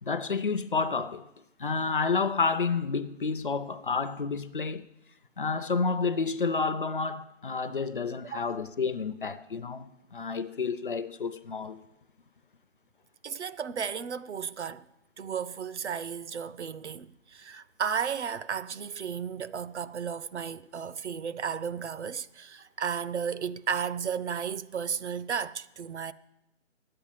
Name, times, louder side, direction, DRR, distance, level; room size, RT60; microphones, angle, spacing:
voice 1, 0.0-1.2 1.6-4.9 5.4-11.8, left 4 dB, 45° left, 0.6 m, -30 dB
voice 2, 8.3-8.6 13.2-14.8 15.2-26.1, right 7 dB, 65° right, 0.6 m, -34 dB
10.0 x 8.7 x 9.0 m
hypercardioid pair, 170°, 38 cm